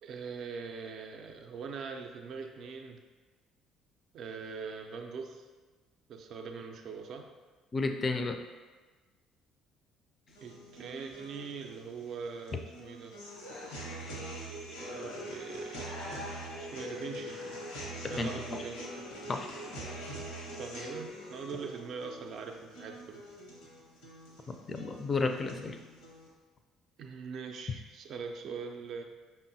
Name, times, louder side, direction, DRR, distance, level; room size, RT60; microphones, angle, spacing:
voice 1, 0.0-3.0 4.1-5.5 6.1-7.3 10.4-13.2 14.7-16.1 16.6-17.4 18.1-18.9 19.5-19.6 20.5-23.3 27.0-29.0, right 5 dB, 60° right, 4 dB, 0.4 m, -42 dB
voice 2, 7.7-8.4 18.2-18.6 19.3-19.5 24.5-25.8, left 3 dB, 35° left, 6 dB, 0.4 m, -32 dB
sound 1, 10.3-26.3, equal, 85° left, 0.8 m, -43 dB
5.1 x 2.0 x 2.7 m, 1.3 s
hypercardioid pair, 60°, 0 cm